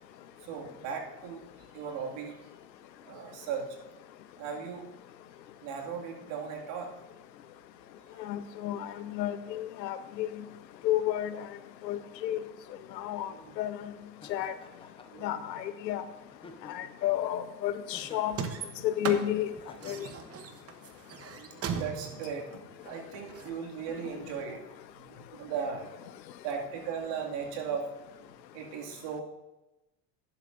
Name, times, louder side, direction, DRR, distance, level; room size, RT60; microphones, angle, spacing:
voice 1, 0.4-1.5 1.7-2.4 3.1-3.8 4.4-4.9 5.6-7.0 8.1-8.2 13.3-13.6 15.1-15.4 19.0-19.1 21.3-22.5 22.8-24.6 24.9-25.8 26.4-27.9 28.5-29.2, right 6 dB, 60° right, 0 dB, 2.3 m, -37 dB
voice 2, 8.3-10.3 10.8-11.3 11.8-12.4 13.0-13.8 14.3-14.5 15.2-16.0 16.7-18.4 18.8-19.5 19.8-20.1, left 12 dB, 90° left, 12 dB, 0.9 m, -31 dB
Laughter, 14.2-15.3 16.3-17.0 17.9-18.4 19.5-20.3, left 3 dB, 10° left, 1.0 m, -52 dB
sound 1, 18.3-23.5, right 6 dB, 30° right, 1.0 m, -38 dB
11.5 x 11.0 x 2.6 m, 1.0 s
hypercardioid pair, 100°, 49 cm